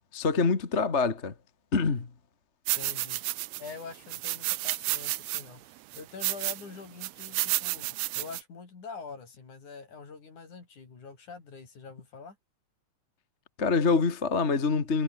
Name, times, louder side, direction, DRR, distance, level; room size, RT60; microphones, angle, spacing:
voice 1, 0.1-1.3 1.7-2.1 13.6-15.0, left 4 dB, 25° left, 1.7 m, -25 dB
sound 1, 2.7-3.7 4.1-5.4 5.9-6.6 7.0-8.4, right 18 dB, 80° right, 1.5 m, -31 dB
voice 2, 2.8-12.4, left 5 dB, 65° left, 6.3 m, -45 dB
omnidirectional pair, 3.7 m